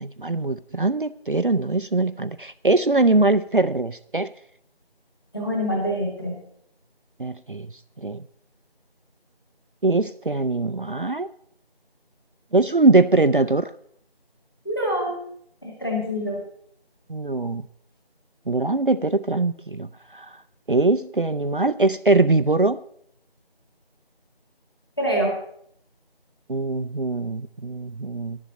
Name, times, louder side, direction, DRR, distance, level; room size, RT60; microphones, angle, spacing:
voice 1, 0.0-4.3 7.2-7.7 8.0-8.2 9.8-11.3 12.5-13.7 17.1-17.6 18.5-20.3 20.7-22.8 26.5-28.4, right 2 dB, 60° right, 12 dB, 0.4 m, -22 dB
voice 2, 5.3-6.3 14.6-15.2 15.6-16.4 25.0-25.4, equal, 25° left, -2 dB, 2.5 m, -25 dB
11.0 x 7.3 x 7.7 m, 0.67 s
figure-of-eight pair, 180°, 30 cm